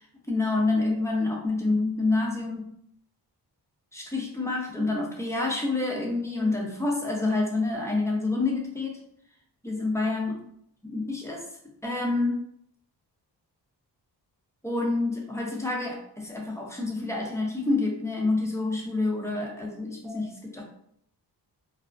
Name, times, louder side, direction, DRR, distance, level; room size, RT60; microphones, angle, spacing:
voice 1, 0.3-2.7 3.9-9.0 9.6-10.3 10.8-11.4 11.8-12.4 14.6-20.6, left 3 dB, 5° left, -1 dB, 0.7 m, -28 dB
2.4 x 2.1 x 2.4 m, 0.69 s
cardioid pair, 45°, 44 cm